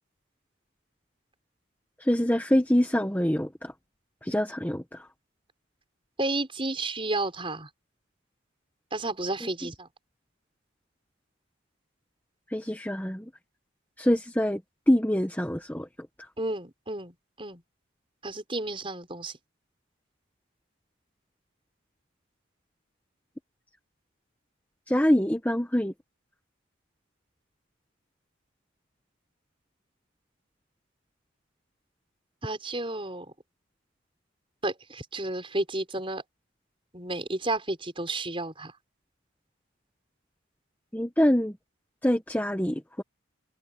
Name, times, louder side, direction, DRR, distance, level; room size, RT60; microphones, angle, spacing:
voice 1, 2.0-3.7 4.2-5.1 12.5-13.3 14.0-14.6 14.9-15.9 16.2-16.3 24.9-25.9 40.9-41.5 42.0-43.0, equal, 10° left, 1.3 m, -25 dB
voice 2, 6.2-7.7 8.9-9.9 16.4-17.6 18.2-19.4 32.4-33.3 34.6-36.2 36.9-38.7, right 2 dB, 25° right, 5.9 m, -32 dB
head